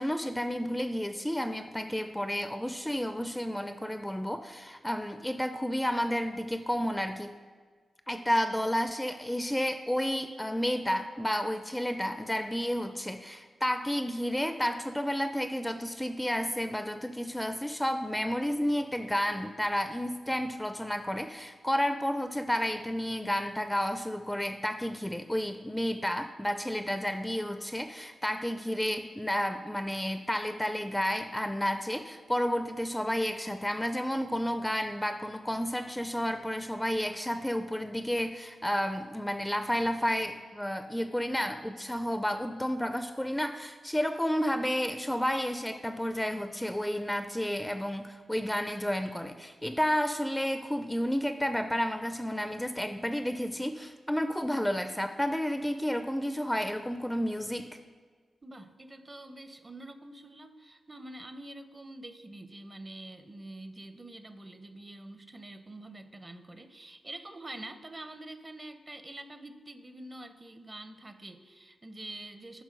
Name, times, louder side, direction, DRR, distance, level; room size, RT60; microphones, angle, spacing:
voice 1, 0.0-7.3 8.1-57.8, equal, 10° left, 9 dB, 0.4 m, -31 dB
voice 2, 58.4-72.6, right 1 dB, 30° right, 9 dB, 0.7 m, -46 dB
9.4 x 3.6 x 5.2 m, 1.5 s
cardioid pair, 50°, 0 cm